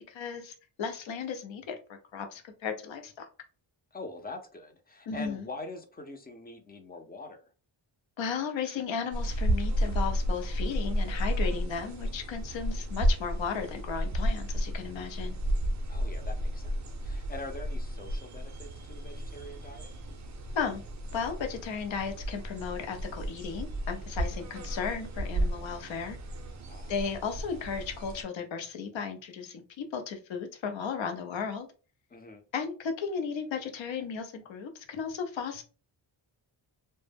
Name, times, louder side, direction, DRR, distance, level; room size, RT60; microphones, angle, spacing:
voice 1, 0.1-1.8 2.1-3.3 5.1-5.5 8.2-15.4 20.5-20.8 21.1-26.2 26.9-31.7 32.5-35.6, left 6 dB, 70° left, 0.7 m, -35 dB
voice 2, 3.9-7.4 15.9-19.9 26.7-26.9 32.1-32.4, left 3 dB, 20° left, 0.4 m, -44 dB
sound 1, 9.1-28.2, equal, 40° right, 0.5 m, -32 dB
2.1 x 2.0 x 3.2 m
wide cardioid pair, 105°, 47 cm